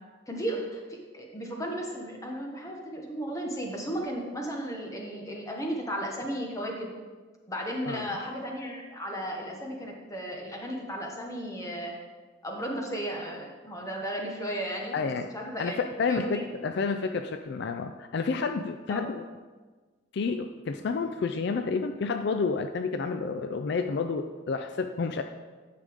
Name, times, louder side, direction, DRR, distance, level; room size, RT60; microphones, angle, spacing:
voice 1, 0.3-6.9 7.5-11.9 12.4-16.5 18.9-19.1, equal, 15° left, 0 dB, 1.2 m, -35 dB
voice 2, 14.9-15.3 15.6-19.2 20.1-25.2, left 4 dB, 60° left, 7 dB, 0.4 m, -30 dB
10.5 x 6.7 x 3.6 m, 1.4 s
head